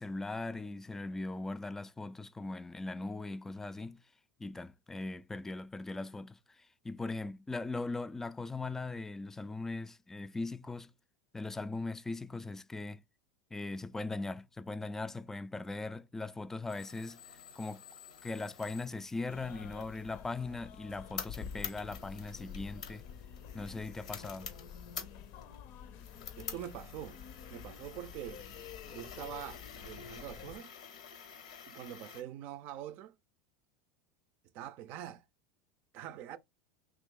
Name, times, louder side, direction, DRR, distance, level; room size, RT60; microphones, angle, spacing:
voice 1, 0.0-4.0 4.4-10.9 11.3-13.0 13.5-17.2 17.6-17.8 18.2-23.0 23.5-24.5, left 3 dB, 10° left, 0.3 m, -40 dB
sound 1, 16.7-32.2, left 7 dB, 90° left, 0.9 m, -49 dB
sound 2, 19.3-30.6, left 8 dB, 60° left, 0.6 m, -49 dB
voice 2, 26.4-27.2 27.5-28.4 28.9-30.7 31.7-33.2 34.5-35.2 35.9-36.4, right 11 dB, 55° right, 0.4 m, -44 dB
3.0 x 2.8 x 3.6 m
hypercardioid pair, 95°, 4 cm